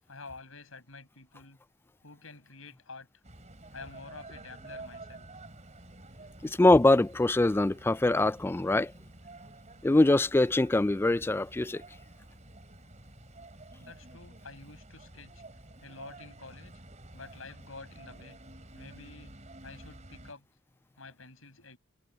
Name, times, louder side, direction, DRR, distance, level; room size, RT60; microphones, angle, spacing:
voice 1, 0.1-1.6 2.0-3.1 3.7-5.3 6.2-6.3 13.8-15.4 15.8-16.8 17.1-18.4 18.7-19.4 19.6-20.5 21.0-21.8, left 3 dB, 80° left, 6.3 m, -49 dB
sound 1, 3.2-20.3, right 2 dB, 35° right, 3.6 m, -50 dB
voice 2, 6.4-8.9 9.8-11.8, left 2 dB, 10° left, 0.3 m, -23 dB
head